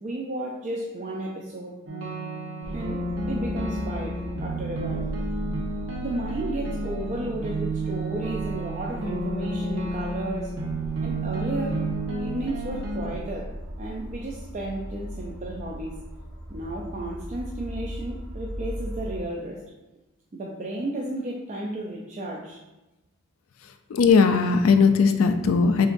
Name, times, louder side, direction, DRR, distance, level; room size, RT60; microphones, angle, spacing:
voice 1, 0.0-1.8 2.7-5.1 6.0-10.5 11.0-11.8 12.1-13.5 13.8-16.0 16.5-19.6 20.3-22.6, right 1 dB, 35° right, -2 dB, 0.4 m, -33 dB
sound 1, 1.9-13.1, right 2 dB, 70° right, 0.9 m, -31 dB
sound 2, 2.6-19.2, equal, 10° right, 1.1 m, -37 dB
voice 2, 23.9-25.9, left 5 dB, 75° left, 7 dB, 0.3 m, -18 dB
6.6 x 2.5 x 2.6 m, 1.0 s
head